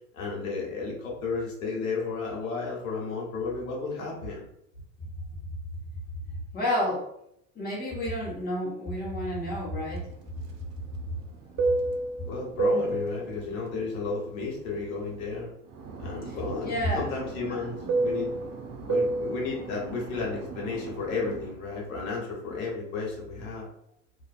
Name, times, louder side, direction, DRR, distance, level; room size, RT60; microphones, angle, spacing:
voice 1, 0.1-4.4 12.3-15.5 16.0-18.3 18.9-23.7, left 4 dB, 85° left, -2 dB, 1.2 m, -33 dB
voice 2, 6.5-7.1 7.5-10.1 16.2-17.1 17.5-17.6, equal, 25° left, -5 dB, 1.2 m, -30 dB
Fixed-wing aircraft airplane, 10.0-15.3 15.7-21.5, right 2 dB, 45° right, 0.6 m, -31 dB
2.6 x 2.5 x 2.5 m, 0.74 s
hypercardioid pair, 95°, 40 cm